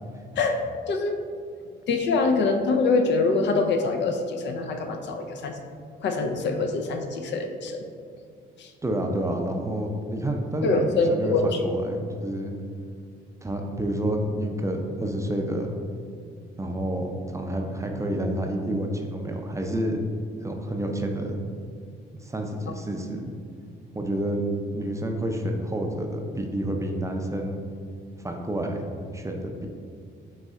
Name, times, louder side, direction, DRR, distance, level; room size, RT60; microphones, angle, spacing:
voice 1, 0.9-1.2 1.9-5.6 6.0-7.9 8.6-8.7 10.6-11.6, left 3 dB, 65° left, 5 dB, 0.5 m, -24 dB
voice 2, 8.8-12.5 13.4-15.7 16.6-20.0 20.4-21.4 22.2-23.3 23.9-24.4 24.7-27.6 28.2-29.7, right 1 dB, 15° right, 2 dB, 0.4 m, -29 dB
4.0 x 3.2 x 3.6 m, 2.2 s
cardioid pair, 90°, 20 cm